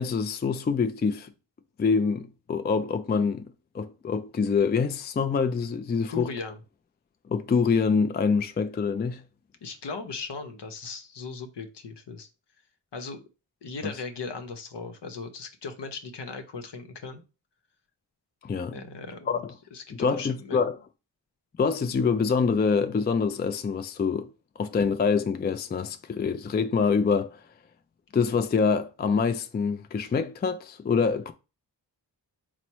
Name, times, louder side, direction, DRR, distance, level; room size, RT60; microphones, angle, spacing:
voice 1, 0.0-1.3 1.8-6.3 7.3-9.2 13.8-13.9 18.4-18.8 19.3-19.5 20.0-20.7 21.6-24.3 24.6-27.4 28.1-31.3, left 5 dB, 25° left, 0.3 m, -25 dB
voice 2, 6.1-6.6 9.6-12.3 12.9-13.2 13.6-17.2 18.7-19.4 19.7-20.6, left 4 dB, 65° left, 0.8 m, -38 dB
4.1 x 2.1 x 4.5 m
cardioid pair, 55°, 45 cm